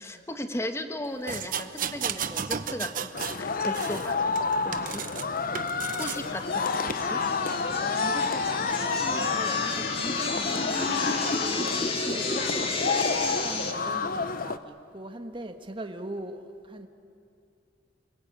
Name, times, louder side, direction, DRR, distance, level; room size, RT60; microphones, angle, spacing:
voice 1, 0.0-4.2 4.6-5.0 5.9-7.2, left 1 dB, 15° left, 7 dB, 1.3 m, -36 dB
sound 1, 1.3-3.4 3.7-5.2 5.5-6.2 6.9-7.0, right 7 dB, 45° right, 0.9 m, -34 dB
sound 2, 3.1-14.6, left 4 dB, 50° left, 0.8 m, -29 dB
sound 3, 6.0-13.7, left 3 dB, 30° left, 2.1 m, -32 dB
voice 2, 8.0-16.9, right 1 dB, 25° right, 6 dB, 1.5 m, -41 dB
28.5 x 21.0 x 8.9 m, 2.7 s
head